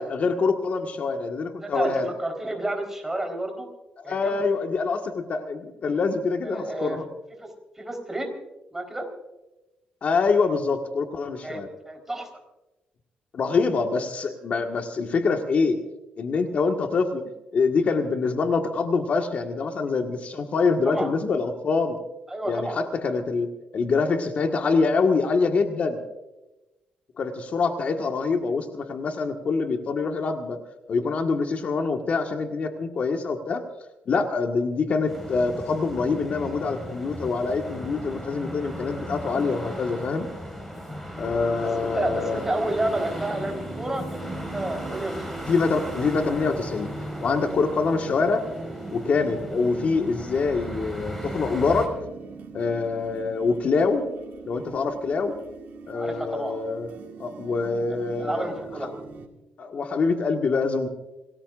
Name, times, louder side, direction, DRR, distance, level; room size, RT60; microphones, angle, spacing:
voice 1, 0.0-2.1 4.0-7.0 10.0-11.7 13.3-15.8 16.2-17.2 17.5-22.0 22.5-26.0 27.2-30.6 30.9-33.6 34.1-40.3 41.2-42.4 45.5-46.9 47.2-48.4 48.9-51.9 52.5-54.0 54.4-55.3 55.9-56.9 57.2-58.6 59.6-60.9, left 4 dB, 50° left, 4 dB, 1.6 m, -25 dB
voice 2, 1.6-1.9 2.2-3.7 4.0-4.4 6.5-7.0 7.4-8.3 8.7-9.1 11.4-12.3 20.8-21.1 22.3-22.8 34.4-34.5 41.6-45.5 55.9-56.6 58.1-58.9, right 1 dB, 10° right, 4 dB, 4.0 m, -30 dB
sound 1, 35.1-51.9, equal, 5° left, 5.1 m, -37 dB
sound 2, 41.2-59.3, right 5 dB, 85° right, 2.1 m, -41 dB
27.5 x 19.0 x 2.5 m, 1.0 s
cardioid pair, 125°, 3 cm